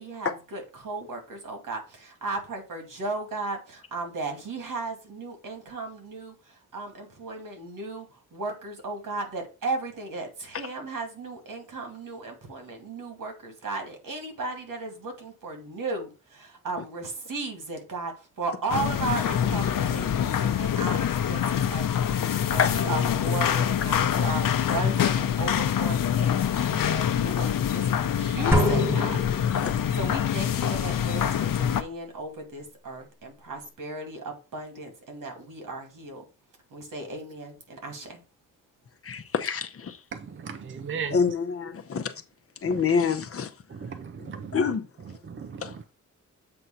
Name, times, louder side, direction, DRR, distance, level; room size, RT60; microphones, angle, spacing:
voice 1, 0.0-29.2 29.6-36.2 36.7-38.2, right 3 dB, 80° right, 2.2 m, -35 dB
sound 1, 18.7-31.8, left 9 dB, 90° left, 0.7 m, -25 dB
sound 2, 28.5-30.2, right 1 dB, 10° right, 1.0 m, -27 dB
voice 2, 29.4-29.8 39.0-40.0 41.1-42.1 42.6-43.5 44.2-44.9 45.6-45.7, left 6 dB, 45° left, 0.8 m, -27 dB
voice 3, 40.1-41.2 43.7-44.6 45.3-45.9, right 6 dB, 40° right, 0.5 m, -36 dB
7.7 x 2.7 x 5.8 m
wide cardioid pair, 145°, 32 cm